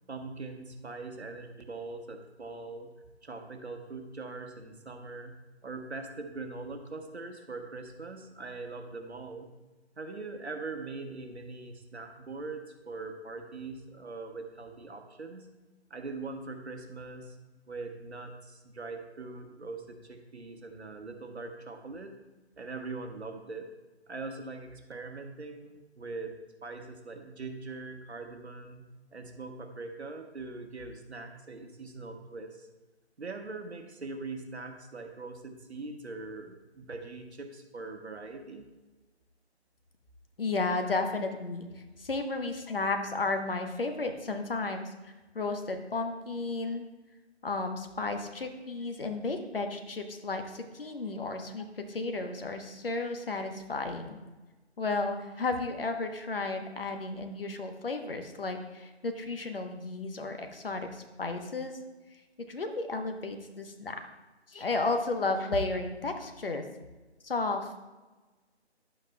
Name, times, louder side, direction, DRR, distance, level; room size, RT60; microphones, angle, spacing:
voice 1, 0.1-2.9 3.2-9.5 10.0-15.5 15.9-17.4 17.7-22.1 22.6-23.7 24.1-32.7 33.2-38.6, right 3 dB, 70° right, 4 dB, 1.3 m, -42 dB
voice 2, 40.4-41.7 42.0-44.9 45.3-46.9 47.4-54.2 54.8-61.8 62.4-64.0 64.5-66.6 67.2-67.9, left 3 dB, 55° left, 5 dB, 1.1 m, -33 dB
11.0 x 8.5 x 2.3 m, 1.2 s
figure-of-eight pair, 165°, 34 cm